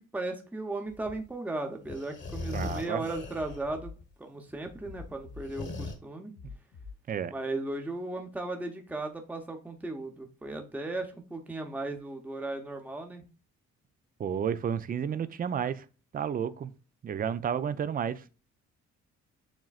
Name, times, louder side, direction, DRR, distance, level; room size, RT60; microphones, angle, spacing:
voice 1, 0.0-3.9 4.2-6.3 7.3-13.2, right 2 dB, 5° right, 0.8 m, -36 dB
sound 1, 0.9-1.3 1.8-3.7 4.0-4.1 4.6-6.0, left 2 dB, 35° left, 1.2 m, -39 dB
sound 2, 2.2-2.4 3.3-3.9 4.8-5.4 6.3-6.9, left 5 dB, 70° left, 1.1 m, -45 dB
voice 2, 2.5-3.0 7.1-7.3 14.2-15.8 16.1-16.7 17.0-18.2, right 8 dB, 30° right, 0.4 m, -31 dB
7.2 x 3.0 x 2.4 m
cardioid pair, 90°, 30 cm